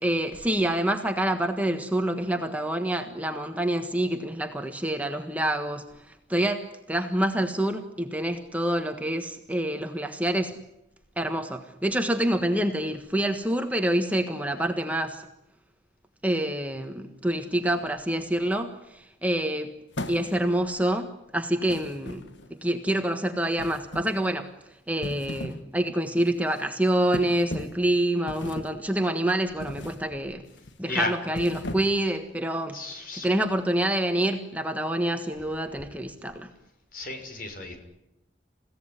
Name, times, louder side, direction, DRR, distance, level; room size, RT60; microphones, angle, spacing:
voice 1, 0.0-10.5 11.2-15.2 16.2-19.7 20.1-22.2 22.5-24.5 24.9-30.4 30.8-36.5, right 1 dB, 10° right, 5 dB, 1.4 m, -27 dB
sound 1, 19.9-20.6 21.7-22.6 23.6-24.3 24.9-25.7 26.0-26.3 27.1-27.9 28.3-28.8 29.6-30.1 30.4-30.7 31.2-32.1, left 1 dB, 80° left, 1.6 m, -37 dB
voice 2, 32.7-33.3 36.9-37.8, left 3 dB, 50° left, 5 dB, 6.0 m, -32 dB
29.5 x 17.0 x 9.8 m, 0.90 s
head